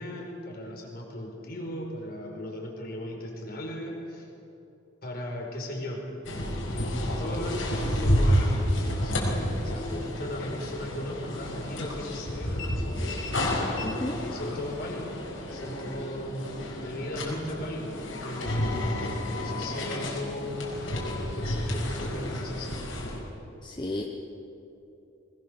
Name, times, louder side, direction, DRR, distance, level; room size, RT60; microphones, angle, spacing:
voice 1, 0.0-4.3 5.0-6.1 6.6-13.3 14.1-18.7 19.3-23.2, left 1 dB, 50° left, 0 dB, 4.7 m, -37 dB
sound 1, 6.2-23.2, equal, 80° left, 5.2 m, -30 dB
voice 2, 13.8-14.2 23.6-24.0, left 1 dB, 25° left, 1 dB, 1.1 m, -32 dB
22.0 x 20.5 x 7.0 m, 2.9 s
head